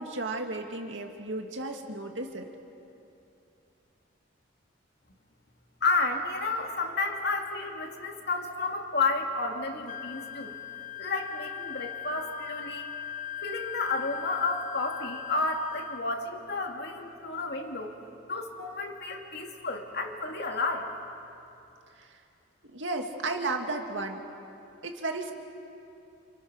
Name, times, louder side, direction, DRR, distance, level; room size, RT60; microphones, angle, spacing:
voice 1, 0.0-2.5 22.0-22.1 22.7-24.2 24.8-25.3, right 2 dB, 65° right, 3 dB, 2.3 m, -34 dB
voice 2, 5.8-10.6 11.0-12.9 13.4-17.9 18.3-20.9, left 3 dB, 55° left, 2 dB, 2.7 m, -31 dB
Wind instrument woodwind instrument, 9.9-16.1, left 10 dB, 40° left, 0.5 m, -39 dB
29.0 x 28.5 x 6.5 m, 2.7 s
head